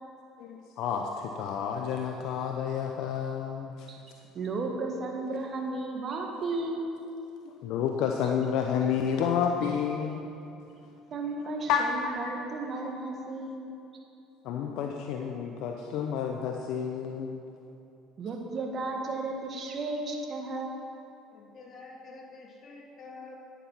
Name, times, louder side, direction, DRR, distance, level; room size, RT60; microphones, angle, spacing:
voice 1, 0.4-3.9 7.4-10.2 11.7-12.3 14.4-17.4, left 7 dB, 70° left, 2 dB, 0.7 m, -30 dB
voice 2, 4.3-6.9 11.1-13.7 18.2-20.8, right 3 dB, 45° right, 2 dB, 1.9 m, -34 dB
voice 3, 21.3-23.4, left 3 dB, 45° left, -1 dB, 2.5 m, -47 dB
10.0 x 10.0 x 5.8 m, 2.8 s
hypercardioid pair, 75°, 0 cm